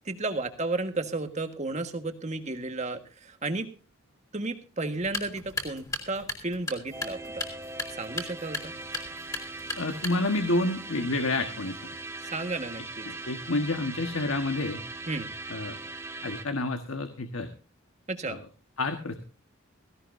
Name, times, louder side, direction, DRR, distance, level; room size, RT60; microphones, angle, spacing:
voice 1, 0.0-3.7 4.3-7.2 7.9-8.7 12.3-13.1 15.1-15.3 18.1-18.4, right 2 dB, 35° right, 7 dB, 1.6 m, -33 dB
sound 1, 5.0-10.5, left 2 dB, 15° left, 3.0 m, -37 dB
sound 2, 6.9-16.4, right 3 dB, 10° right, 1.4 m, -40 dB
voice 2, 9.8-11.7 13.1-14.8 15.5-15.8 16.2-17.5 18.2-18.4 18.8-19.2, left 2 dB, 80° left, 6 dB, 1.4 m, -29 dB
17.0 x 16.5 x 2.7 m, 0.34 s
head